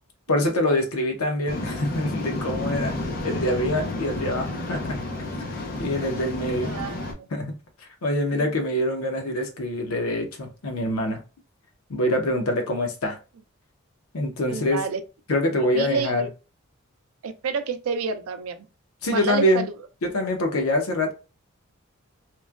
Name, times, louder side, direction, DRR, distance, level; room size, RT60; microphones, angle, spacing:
voice 1, 0.3-3.0 3.2-5.0 5.8-6.7 7.3-7.6 8.0-11.2 11.9-13.2 14.1-14.8 15.3-16.3 19.0-19.7 20.0-21.1, left 1 dB, 90° left, 0.7 m, -25 dB
Waves surf, 1.5-7.1, left 2 dB, 45° left, 0.5 m, -31 dB
voice 2, 6.6-7.3 8.3-8.4 14.5-15.0 15.7-16.3 17.2-18.6 19.1-19.6, right 5 dB, 85° right, 0.4 m, -29 dB
3.0 x 2.1 x 2.3 m
head